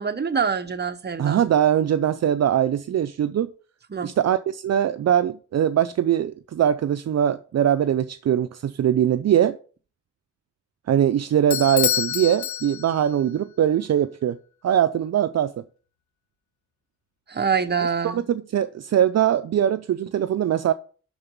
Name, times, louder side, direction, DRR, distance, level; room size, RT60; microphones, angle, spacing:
voice 1, 0.0-1.4 3.9-4.1 17.3-18.2, right 6 dB, 35° right, 0.9 m, -25 dB
voice 2, 1.2-3.5 4.0-9.6 10.9-14.4 14.6-15.6 18.0-20.7, right 10 dB, 60° right, 0.5 m, -21 dB
Bell / Doorbell, 11.5-13.2, left 11 dB, 75° left, 0.5 m, -27 dB
11.5 x 4.0 x 5.2 m
wide cardioid pair, 95°, 30 cm